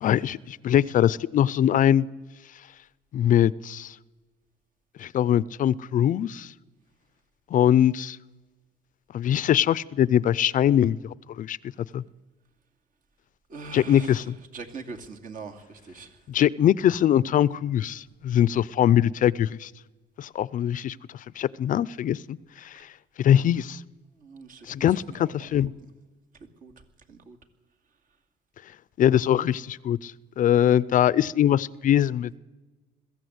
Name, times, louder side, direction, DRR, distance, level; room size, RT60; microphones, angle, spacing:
voice 1, 0.0-2.1 3.1-4.0 5.0-6.5 7.5-8.2 9.1-11.6 11.9-12.0 13.7-14.4 16.3-19.7 20.2-21.0 21.4-22.9 23.2-23.8 24.7-25.7 29.0-32.3, left 10 dB, 50° left, 20 dB, 0.5 m, -22 dB
voice 2, 13.5-14.2 14.5-16.1 24.2-24.7 26.6-26.7 27.1-27.4, right 4 dB, 55° right, 3 dB, 2.5 m, -41 dB
22.0 x 15.0 x 8.0 m, 1.2 s
cardioid pair, 110°, 17 cm